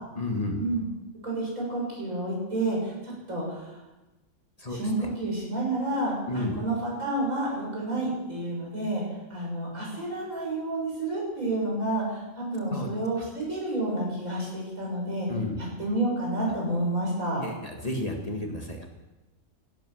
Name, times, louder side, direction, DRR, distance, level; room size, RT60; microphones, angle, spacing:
voice 1, 0.2-0.6 4.6-5.1 6.3-6.6 12.7-12.9 15.3-15.6 17.4-18.8, left 2 dB, 30° left, 2 dB, 1.9 m, -32 dB
voice 2, 1.2-3.8 4.7-9.0 9.3-15.3 15.6-17.4, right 2 dB, 90° right, -4 dB, 7.2 m, -30 dB
16.5 x 12.0 x 6.4 m, 1.1 s
omnidirectional pair, 1.4 m